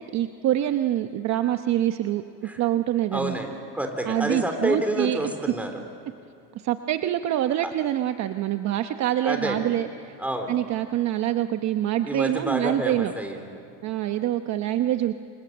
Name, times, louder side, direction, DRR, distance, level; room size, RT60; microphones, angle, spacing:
voice 1, 0.0-2.2 2.6-3.4 4.1-5.2 6.6-10.1 10.5-13.1 13.8-15.2, right 12 dB, 45° right, 8 dB, 1.0 m, -25 dB
voice 2, 3.1-5.7 9.2-9.7 10.2-10.6 12.0-13.6, right 1 dB, 5° right, 5 dB, 3.5 m, -28 dB
28.5 x 25.5 x 7.9 m, 2.7 s
cardioid pair, 135°, 39 cm